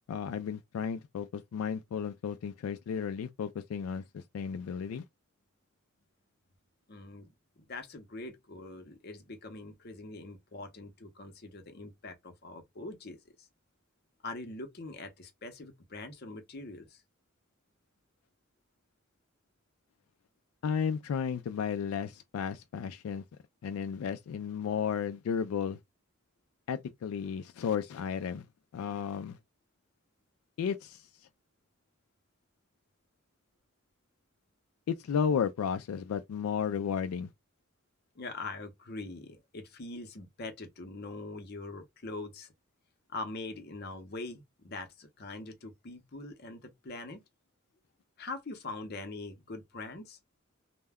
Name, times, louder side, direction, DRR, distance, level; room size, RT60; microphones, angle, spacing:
voice 1, 0.1-5.0 20.6-23.2 23.6-25.8 26.7-28.5 28.7-29.4 30.6-31.1 34.9-37.3, left 7 dB, 85° left, 0.3 m, -33 dB
voice 2, 6.9-7.3 7.6-13.5 14.2-17.0 38.2-42.5 43.1-47.2 48.2-50.2, left 2 dB, 50° left, 0.7 m, -43 dB
2.2 x 2.1 x 3.4 m
head